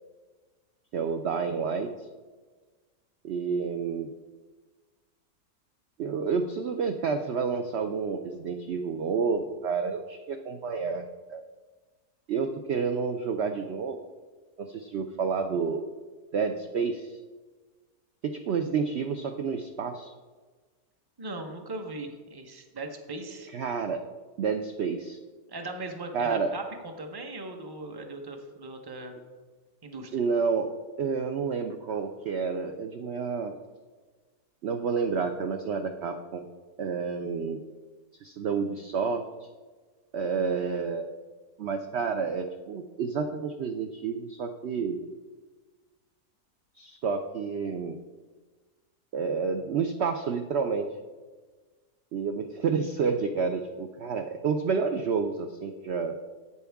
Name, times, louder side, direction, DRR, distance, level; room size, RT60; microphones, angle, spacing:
voice 1, 0.9-2.0 3.2-4.1 6.0-11.4 12.3-14.0 14.6-15.9 16.3-17.2 18.2-20.1 23.5-24.0 24.4-25.2 26.1-26.5 30.1-30.7 31.0-33.6 34.6-36.4 36.8-37.6 38.2-39.2 40.1-41.1 41.6-45.0 46.8-48.0 49.1-50.9 52.1-56.1, right 5 dB, 70° right, 5 dB, 0.6 m, -29 dB
voice 2, 21.2-23.5 25.5-29.2 29.8-30.2, right 2 dB, 20° right, 4 dB, 0.7 m, -39 dB
11.0 x 8.4 x 3.5 m, 1.4 s
omnidirectional pair, 1.7 m